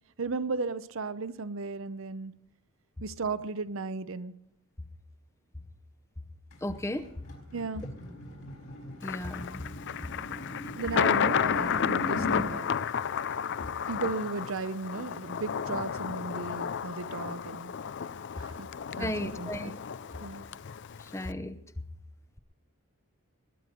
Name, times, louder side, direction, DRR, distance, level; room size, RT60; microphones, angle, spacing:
voice 1, 0.2-2.3 3.0-4.3 7.5-7.9 10.8-12.7 13.9-17.7 18.4-18.7 19.0-19.7 20.2-20.4, right 4 dB, 60° right, 13 dB, 0.7 m, -35 dB
sound 1, 6.5-12.5, left 1 dB, 70° left, 4.6 m, -39 dB
voice 2, 6.6-7.0 9.0-9.6 19.0-19.7 21.1-21.6, left 1 dB, 10° left, 11 dB, 0.7 m, -34 dB
Thunder, 9.0-21.3, left 7 dB, 50° left, 0.4 m, -32 dB
20.5 x 9.6 x 5.2 m, 0.82 s
head